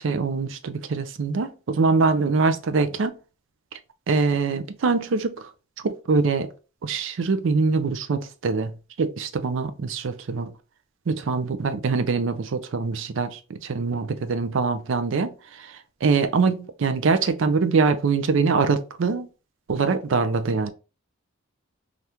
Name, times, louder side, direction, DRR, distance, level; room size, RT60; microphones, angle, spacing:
voice 1, 0.0-3.1 4.1-5.5 5.8-6.5 6.8-8.7 9.0-10.5 11.1-15.3 16.0-19.3 19.7-20.7, right 4 dB, 65° right, 0.4 m, -23 dB
2.8 x 2.4 x 3.3 m
head